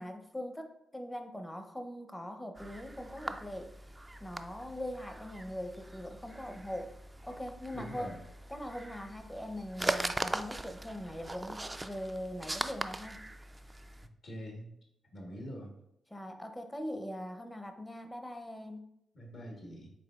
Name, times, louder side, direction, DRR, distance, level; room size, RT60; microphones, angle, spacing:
voice 1, 0.0-3.7 4.2-6.9 7.2-8.1 8.5-13.2 15.3-15.4 16.1-18.8, equal, 15° left, 6 dB, 0.6 m, -41 dB
sound 1, 2.6-14.1, right 1 dB, 20° right, 0.3 m, -40 dB
voice 2, 7.7-8.2 14.2-14.7 15.1-15.7 19.1-19.9, equal, 65° left, -1 dB, 1.3 m, -44 dB
4.9 x 3.7 x 2.3 m, 0.77 s
supercardioid pair, 45°, 0 cm